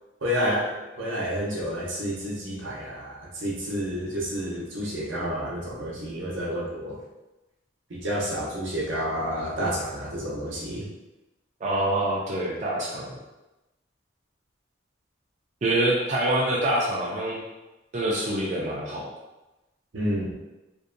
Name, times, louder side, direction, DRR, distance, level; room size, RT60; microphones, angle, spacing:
voice 1, 0.2-7.0 7.9-10.9 19.9-20.3, equal, 80° right, -4 dB, 0.7 m, -30 dB
voice 2, 11.6-13.2 15.6-17.4 17.9-19.1, right 1 dB, 40° right, -4 dB, 0.4 m, -25 dB
2.6 x 2.1 x 2.5 m, 1.0 s
head